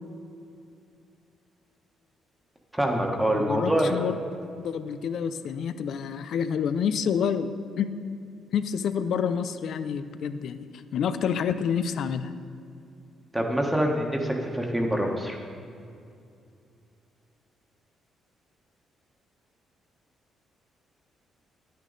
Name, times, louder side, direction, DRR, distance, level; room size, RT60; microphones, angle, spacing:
voice 1, 2.7-3.9 13.3-15.4, right 1 dB, 10° right, 1 dB, 1.3 m, -25 dB
voice 2, 3.4-4.1 4.6-7.5 7.8-7.9 8.5-12.3, left 7 dB, 70° left, 11 dB, 0.5 m, -28 dB
10.0 x 9.3 x 4.0 m, 2.5 s
cardioid pair, 90°, 0 cm